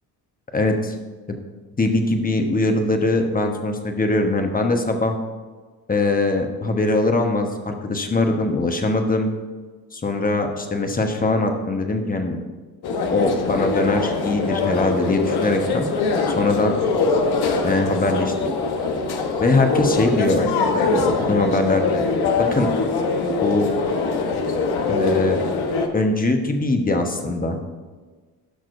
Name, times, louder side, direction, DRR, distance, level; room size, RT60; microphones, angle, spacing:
voice 1, 0.5-0.9 1.3-1.4 1.8-5.2 5.9-9.3 9.9-12.4 13.1-15.9 16.4-16.7 17.6-18.3 19.4-22.0 22.4-22.7 23.4-23.7 24.9-25.4 25.9-27.6, left 2 dB, 20° left, 4 dB, 1.2 m, -21 dB
sound 1, 12.8-25.9, left 4 dB, 65° left, 1.1 m, -23 dB
15.5 x 6.0 x 2.6 m, 1.4 s
supercardioid pair, 80°, 41 cm